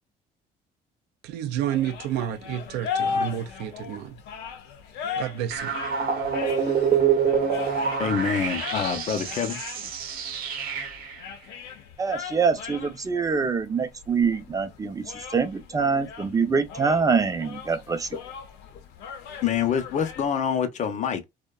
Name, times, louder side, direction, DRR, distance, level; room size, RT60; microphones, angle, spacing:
voice 1, 1.2-4.2 5.2-5.7, right 11 dB, 85° right, 0.4 m, -30 dB
sound 1, 1.7-20.3, left 6 dB, 90° left, 0.6 m, -38 dB
sound 2, 5.5-11.2, right 6 dB, 60° right, 0.8 m, -26 dB
voice 2, 8.0-9.9 19.4-21.3, left 7 dB, 45° left, 0.5 m, -26 dB
voice 3, 12.0-18.1, right 5 dB, 20° right, 0.5 m, -25 dB
2.5 x 2.1 x 2.3 m
cardioid pair, 110°, 17 cm